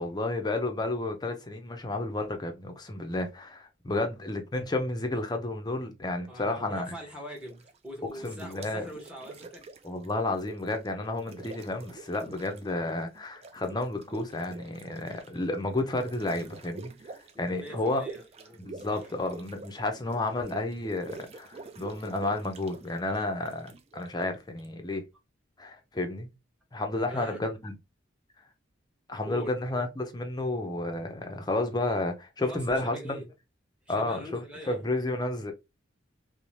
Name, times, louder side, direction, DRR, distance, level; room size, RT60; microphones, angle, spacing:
voice 1, 0.0-6.9 8.2-8.9 9.8-18.0 18.6-25.0 25.6-26.3 26.7-27.8 29.1-33.1 33.9-34.4 34.7-35.5, left 2 dB, 20° left, 0.5 m, -31 dB
voice 2, 6.3-9.6 17.3-18.6 18.9-19.1 27.1-27.4 29.2-29.5 32.4-33.3 33.9-34.9, equal, 5° right, 0.8 m, -42 dB
sound 1, 7.4-7.8 8.1-10.9 11.1-12.9 13.1-24.7, right 3 dB, 30° right, 0.3 m, -47 dB
2.7 x 2.0 x 3.0 m
head